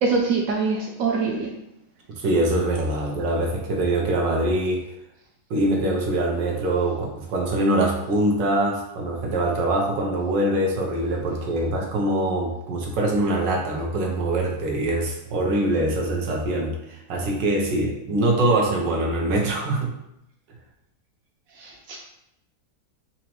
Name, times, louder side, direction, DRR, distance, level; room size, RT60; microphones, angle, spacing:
voice 1, 0.0-1.5 21.6-22.0, right 4 dB, 70° right, 1 dB, 0.8 m, -24 dB
voice 2, 2.2-4.8 5.5-19.9, right 1 dB, 90° right, 0 dB, 1.4 m, -23 dB
4.1 x 2.7 x 3.0 m, 0.82 s
omnidirectional pair, 1.9 m